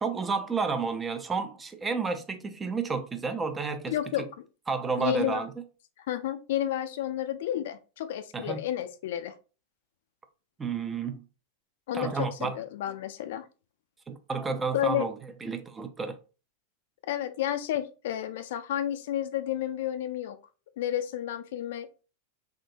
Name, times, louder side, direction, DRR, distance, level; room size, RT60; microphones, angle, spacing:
voice 1, 0.0-3.9 4.7-5.5 8.3-8.6 10.6-11.2 11.9-12.6 14.1-15.1 15.4-16.2, right 5 dB, 15° right, 0.4 m, -31 dB
voice 2, 3.9-4.4 5.0-5.4 6.0-9.3 11.9-13.5 14.7-15.1 17.1-20.4 20.8-22.0, left 11 dB, 55° left, 0.3 m, -31 dB
3.6 x 2.6 x 2.5 m
figure-of-eight pair, 90°, 0 cm